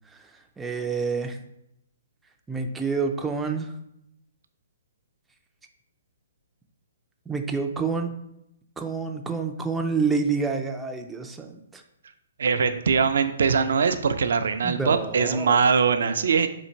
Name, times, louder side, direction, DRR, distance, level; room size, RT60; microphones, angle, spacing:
voice 1, 0.6-1.4 2.5-3.7 7.3-8.1 8.8-11.8 14.6-15.6, right 4 dB, 10° right, 4 dB, 0.4 m, -28 dB
voice 2, 12.4-16.5, right 5 dB, 70° right, 10 dB, 0.4 m, -22 dB
4.0 x 2.5 x 4.4 m, 0.80 s
hypercardioid pair, 145°, 0 cm